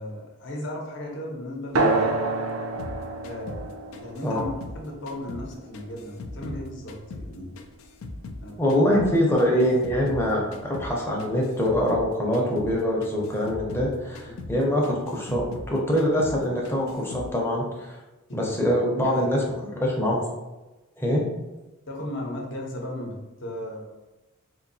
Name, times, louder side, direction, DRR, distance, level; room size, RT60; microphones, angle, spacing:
voice 1, 0.0-2.2 3.2-7.5 8.4-8.8 14.3-14.4 18.3-19.2 21.9-24.0, left 1 dB, 55° left, -1 dB, 0.8 m, -36 dB
sound 1, 1.7-6.8, right 2 dB, 80° right, 0.5 m, -29 dB
sound 2, 2.8-5.5 5.7-8.4 8.7-12.1 12.3-12.7 13.0-15.7 16.0-16.4 16.6-17.3, left 2 dB, 75° left, 0.4 m, -39 dB
voice 2, 8.6-18.0 18.3-20.2 21.0-21.2, equal, 10° left, -3 dB, 0.6 m, -24 dB
3.8 x 2.6 x 2.6 m, 1.1 s
head